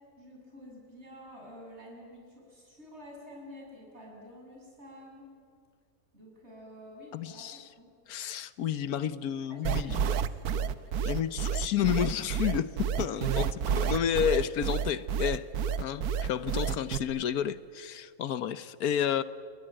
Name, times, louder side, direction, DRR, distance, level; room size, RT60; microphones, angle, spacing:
voice 1, 0.2-5.3 6.1-7.9 9.5-10.8, equal, 45° right, -1 dB, 8.1 m, -49 dB
voice 2, 7.1-7.7 8.1-10.0 11.0-15.5 15.8-19.2, left 9 dB, 80° left, 15 dB, 1.3 m, -31 dB
sound 1, 9.6-17.0, right 7 dB, 85° right, 1.4 m, -29 dB
29.5 x 21.0 x 9.0 m, 2.1 s
omnidirectional pair, 1.6 m